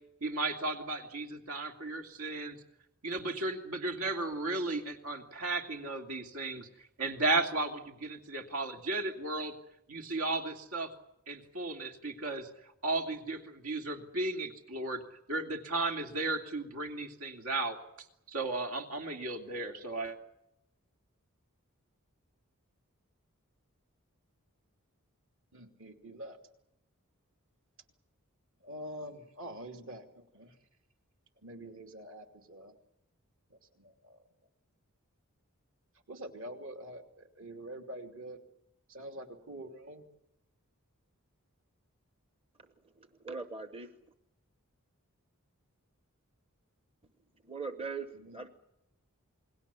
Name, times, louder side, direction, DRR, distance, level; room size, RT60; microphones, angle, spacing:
voice 1, 0.2-2.6 3.0-6.7 7.0-9.6 9.9-10.9 11.3-12.5 12.8-15.0 15.3-17.8 18.3-20.2, right 2 dB, 80° right, 2.9 m, -34 dB
voice 2, 25.5-26.4 28.6-30.6 31.4-32.8 33.5-34.2 36.1-38.4 38.9-40.1 48.1-48.5, right 1 dB, 60° right, 2.9 m, -46 dB
voice 3, 43.0-43.9 47.4-48.5, right 4 dB, 25° right, 0.9 m, -41 dB
28.5 x 20.5 x 7.1 m
head